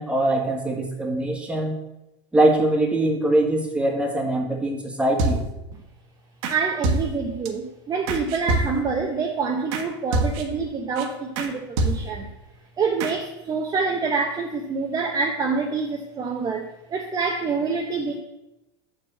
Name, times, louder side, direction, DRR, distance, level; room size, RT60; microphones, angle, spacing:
voice 1, 0.0-1.8 2.3-5.4, right 1 dB, 5° right, 1 dB, 1.7 m, -22 dB
sound 1, 5.2-5.7 6.4-6.6 6.8-7.5 8.1-9.0 9.7-9.9 10.1-10.7 11.0-11.1 11.4-11.5 11.8-12.3 13.0-13.1, right 2 dB, 65° right, 1.3 m, -26 dB
voice 2, 6.5-12.4 12.8-18.2, right 4 dB, 25° right, 2 dB, 0.8 m, -26 dB
6.3 x 5.1 x 6.9 m, 0.94 s
supercardioid pair, 120°, 15 cm